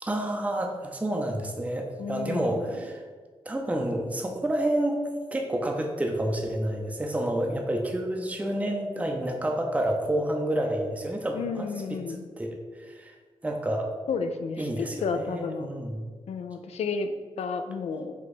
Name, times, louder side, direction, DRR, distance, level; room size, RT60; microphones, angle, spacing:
voice 1, 0.0-3.0 3.5-5.0 5.3-12.0 12.4-12.6 12.9-13.1 13.4-13.9 14.6-16.0, right 1 dB, 15° right, 2 dB, 0.5 m, -29 dB
voice 2, 2.0-2.7 11.3-12.3 14.1-15.7 16.3-18.1, left 5 dB, 75° left, 7 dB, 0.4 m, -32 dB
4.6 x 2.2 x 4.1 m, 1.5 s
cardioid pair, 70°, 11 cm